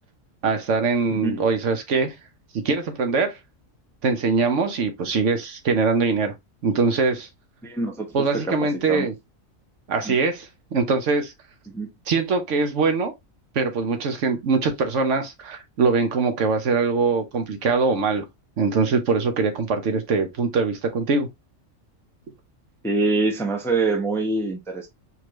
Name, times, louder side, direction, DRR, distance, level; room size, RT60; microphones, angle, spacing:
voice 1, 0.4-2.1 2.5-3.4 4.0-6.3 6.6-7.3 8.1-9.1 9.9-11.3 12.1-13.1 13.5-18.2 18.6-21.3, right 4 dB, 65° right, 1.2 m, -22 dB
voice 2, 1.1-1.4 7.6-8.1 8.3-9.1 10.0-10.1 11.7-11.9 22.8-24.9, right 3 dB, 5° left, 0.6 m, -25 dB
4.2 x 3.2 x 3.0 m
omnidirectional pair, 1.4 m